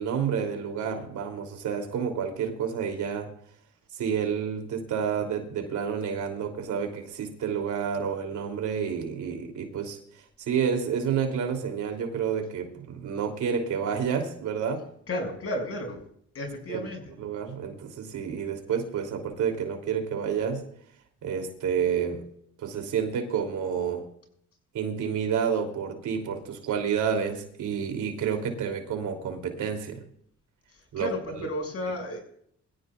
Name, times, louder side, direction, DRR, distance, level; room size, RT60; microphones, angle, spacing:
voice 1, 0.0-3.3 3.9-10.0 10.4-14.8 16.7-16.9 17.2-20.6 21.2-22.2 22.6-24.1 24.7-30.0 30.9-31.1 31.4-31.5, right 7 dB, 75° right, 4 dB, 3.1 m, -29 dB
voice 2, 15.1-16.0 16.3-17.0 30.7-32.2, left 1 dB, 50° left, 3 dB, 6.2 m, -33 dB
22.5 x 15.5 x 2.4 m, 0.66 s
cardioid pair, 90°, 30 cm